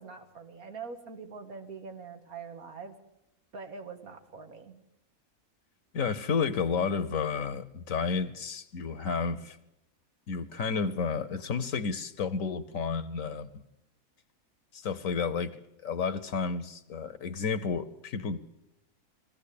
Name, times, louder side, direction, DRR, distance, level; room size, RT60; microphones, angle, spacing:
voice 1, 0.0-3.0 3.5-4.8, right 5 dB, 85° right, 2.2 m, -44 dB
voice 2, 5.9-9.6 10.3-13.6 14.7-15.5 15.8-18.4, left 5 dB, 70° left, 1.3 m, -31 dB
21.5 x 15.5 x 8.5 m
omnidirectional pair, 1.5 m